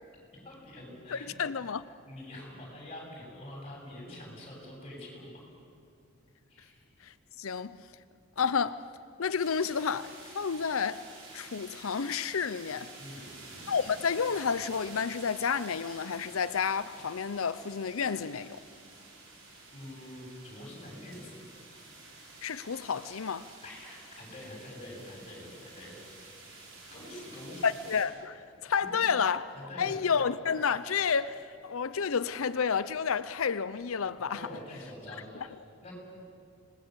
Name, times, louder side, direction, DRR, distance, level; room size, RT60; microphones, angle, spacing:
voice 1, 0.4-1.3 2.1-5.4 6.5-6.7 13.0-13.4 19.7-21.4 23.6-26.0 26.9-27.7 28.8-29.1 29.5-29.9 34.3-35.5 35.8-35.9, left 1 dB, 30° left, 7.9 m, -45 dB
voice 2, 1.1-1.9 7.0-7.8 8.4-8.8 9.2-11.0 11.3-12.9 13.7-18.6 22.4-23.5 27.6-29.4 29.8-34.4, left 6 dB, 75° left, 0.6 m, -30 dB
sound 1, 9.4-28.0, right 3 dB, 70° right, 5.6 m, -50 dB
26.5 x 20.0 x 8.1 m
head